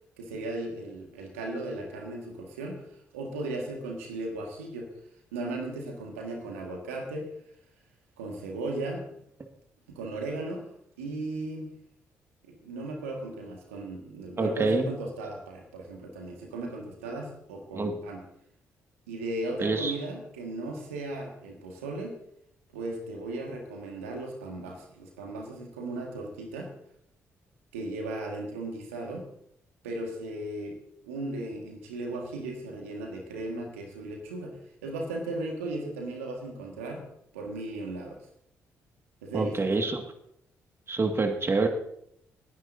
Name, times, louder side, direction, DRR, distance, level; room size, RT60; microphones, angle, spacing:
voice 1, 0.2-4.9 5.3-7.3 8.2-9.1 9.9-10.7 11.0-11.8 12.4-18.2 19.1-22.2 22.7-26.7 27.7-29.3 29.8-30.8 31.0-38.2 39.2-39.7, right 2 dB, 85° right, 1 dB, 1.8 m, -36 dB
voice 2, 14.4-14.9 17.7-17.9 19.6-19.9 39.3-40.0 40.9-41.7, right 3 dB, 35° right, 4 dB, 1.9 m, -26 dB
20.5 x 10.0 x 2.7 m, 0.72 s
hypercardioid pair, 45°, 7 cm